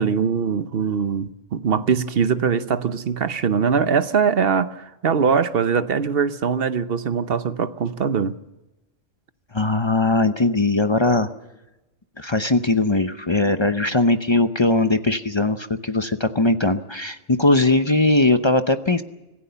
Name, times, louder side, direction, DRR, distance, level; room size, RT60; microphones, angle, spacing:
voice 1, 0.0-8.4, right 6 dB, 50° right, 0.9 m, -22 dB
voice 2, 9.5-11.3 12.2-19.0, left 2 dB, 30° left, 0.6 m, -20 dB
25.5 x 15.5 x 6.9 m
omnidirectional pair, 1.4 m